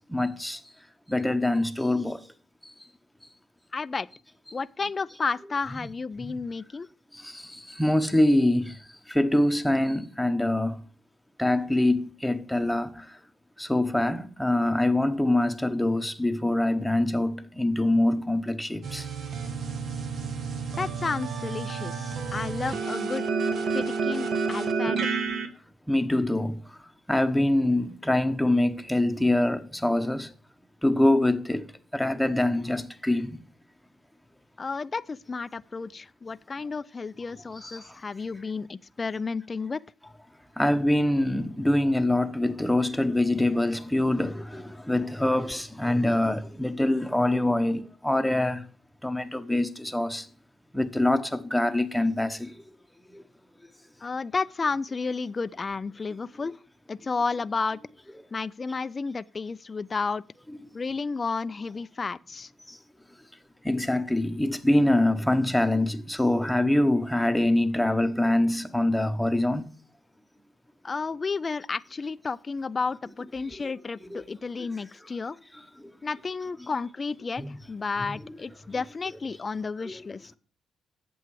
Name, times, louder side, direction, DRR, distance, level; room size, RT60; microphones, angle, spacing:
voice 1, 0.1-0.6 1.1-2.2 5.8-5.9 6.2-6.4 7.2-8.7 9.1-10.8 11.4-13.0 13.6-19.0 25.9-26.6 27.1-30.3 30.8-31.7 31.9-33.3 37.6-37.8 40.6-48.6 49.0-50.2 50.7-52.5 53.1-53.2 63.6-69.6 74.1-74.2 77.4-77.5 78.0-78.2 79.8-80.0, left 1 dB, 5° left, 0.9 m, -24 dB
voice 2, 3.7-4.1 4.5-6.9 20.8-23.2 23.7-25.1 34.6-39.8 54.0-56.5 56.9-57.8 58.3-60.2 60.7-62.5 70.8-75.4 76.0-80.3, left 4 dB, 40° left, 0.3 m, -32 dB
sound 1, 18.8-25.5, right 5 dB, 60° right, 0.9 m, -30 dB
8.2 x 7.0 x 4.6 m
cardioid pair, 70°, 0 cm